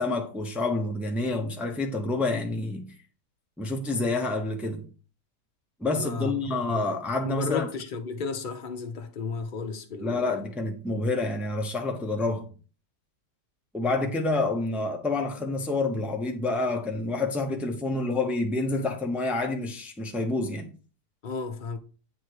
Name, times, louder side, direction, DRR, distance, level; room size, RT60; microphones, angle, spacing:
voice 1, 0.0-2.9 3.6-4.8 5.8-7.7 10.0-12.5 13.7-20.7, left 2 dB, ahead, 0.5 m, -28 dB
voice 2, 5.9-6.8 7.2-10.3 21.2-21.8, left 4 dB, 40° left, 0.8 m, -33 dB
8.7 x 3.2 x 4.6 m
omnidirectional pair, 1.8 m